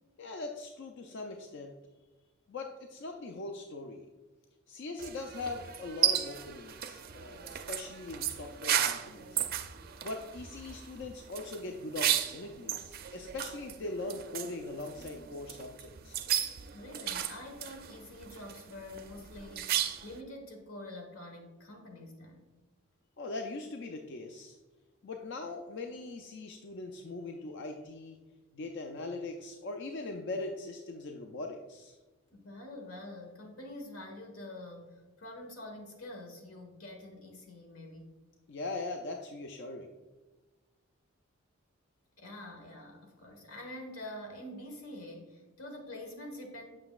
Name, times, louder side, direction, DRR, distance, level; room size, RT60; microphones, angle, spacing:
voice 1, 0.2-1.7 2.5-4.1 4.7-9.5 10.0-16.3 23.2-24.6 25.0-28.2 28.5-32.0 38.5-39.9, left 2 dB, 55° left, 3 dB, 0.4 m, -41 dB
sound 1, 5.0-20.2, right 10 dB, 45° right, 0.4 m, -35 dB
voice 2, 16.7-22.5 32.3-38.1 42.2-46.6, left 1 dB, 85° left, 2 dB, 1.3 m, -46 dB
7.7 x 5.9 x 2.3 m, 1.2 s
head